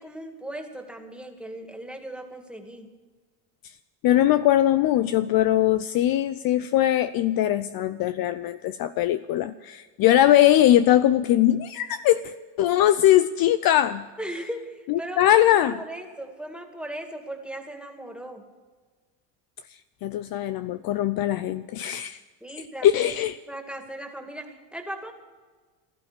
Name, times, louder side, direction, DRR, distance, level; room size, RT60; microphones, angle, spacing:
voice 1, 0.0-2.9 14.2-18.4 22.4-23.1 23.5-25.1, right 1 dB, ahead, 4 dB, 2.4 m, -37 dB
voice 2, 4.0-14.1 14.9-15.8 20.0-22.2 22.8-23.4, left 12 dB, 45° left, 12 dB, 0.6 m, -21 dB
16.5 x 13.0 x 6.9 m, 1.4 s
supercardioid pair, 100°, 48 cm